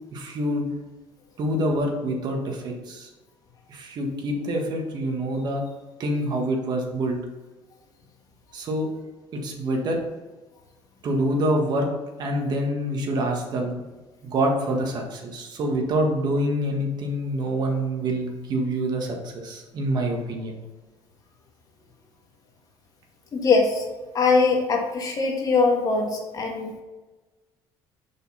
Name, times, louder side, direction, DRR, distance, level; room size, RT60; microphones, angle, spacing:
voice 1, 0.1-0.7 1.4-3.1 3.7-5.6 6.0-7.2 8.5-8.9 9.3-10.0 11.0-11.9 12.2-13.8 14.2-20.5, right 1 dB, 45° right, 1 dB, 1.7 m, -26 dB
voice 2, 23.3-23.8 24.1-26.8, left 4 dB, 40° left, 1 dB, 1.6 m, -22 dB
6.5 x 5.5 x 4.2 m, 1.2 s
cardioid pair, 130°, 10 cm